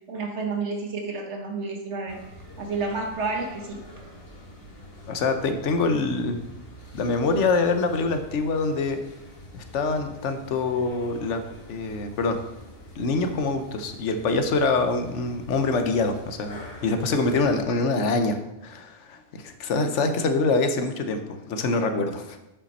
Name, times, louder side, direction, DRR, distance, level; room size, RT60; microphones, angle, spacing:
voice 1, 0.1-2.2 2.6-3.8, right 3 dB, 70° right, 2 dB, 1.5 m, -30 dB
sound 1, 2.1-17.6, left 1 dB, 55° left, 1.4 m, -45 dB
voice 2, 5.1-6.4 6.9-9.0 9.5-11.4 11.7-12.4 13.0-18.4 18.6-22.4, left 3 dB, 80° left, 7 dB, 1.1 m, -25 dB
7.3 x 5.6 x 4.1 m, 0.94 s
omnidirectional pair, 1.2 m